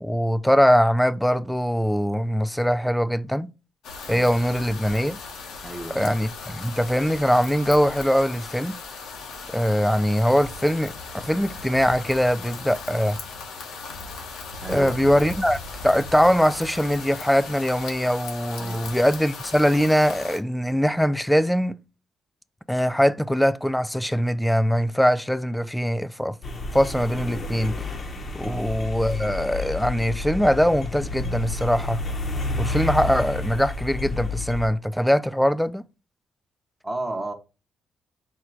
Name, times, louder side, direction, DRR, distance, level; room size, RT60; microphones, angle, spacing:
voice 1, 0.0-3.5 4.1-5.2 6.0-8.8 9.5-13.2 14.7-21.8 22.7-26.4 26.7-27.8 28.3-32.0 32.6-35.8, equal, 5° left, 0.3 m, -22 dB
sound 1, 3.8-20.4, left 4 dB, 85° left, 0.9 m, -38 dB
voice 2, 5.6-6.1 14.6-15.3 18.6-19.0 28.4-28.8 36.8-37.3, right 2 dB, 15° right, 0.7 m, -34 dB
sound 2, 26.4-34.7, left 3 dB, 40° left, 0.7 m, -30 dB
4.4 x 2.2 x 3.7 m
cardioid pair, 90°, 0 cm